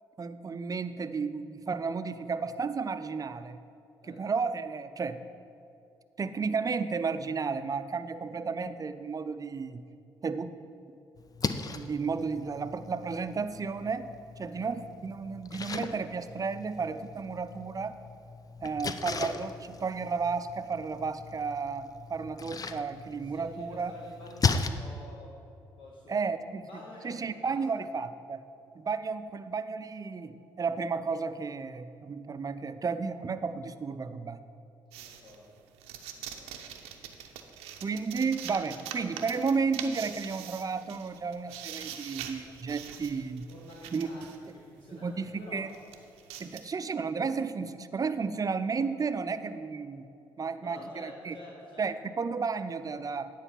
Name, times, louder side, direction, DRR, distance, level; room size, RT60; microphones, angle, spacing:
voice 1, 0.2-3.6 4.1-5.2 6.2-9.8 10.2-10.5 11.7-14.1 14.4-17.9 18.6-23.9 26.1-26.6 27.0-28.4 28.8-34.4 37.8-43.5 43.9-44.1 45.0-45.7 46.4-50.1 50.4-51.4 51.8-53.3, right 5 dB, 35° right, 12 dB, 0.5 m, -33 dB
Splash splatter, 11.2-24.7, left 5 dB, 35° left, 0.6 m, -37 dB
voice 2, 23.2-25.4 25.8-26.3 26.6-27.6 35.0-35.6 36.1-36.7 43.5-45.6 50.6-51.9, left 1 dB, 55° left, -3 dB, 1.5 m, -49 dB
sound 1, 34.9-44.5 45.1-45.3 45.6-46.6, right 9 dB, 80° right, 0.6 m, -43 dB
9.8 x 4.7 x 7.4 m, 2.5 s
hypercardioid pair, 45°, 10 cm